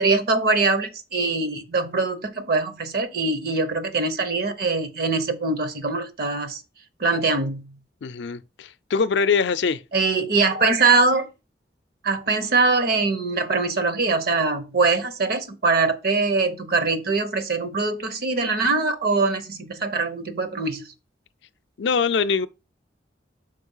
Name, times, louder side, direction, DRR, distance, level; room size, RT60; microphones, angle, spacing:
voice 1, 0.0-6.6 7.0-7.7 9.9-11.3 12.0-20.8, right 3 dB, 60° right, 0.9 m, -22 dB
voice 2, 8.0-9.8 21.8-22.5, left 5 dB, 80° left, 0.5 m, -23 dB
5.2 x 4.0 x 5.5 m
head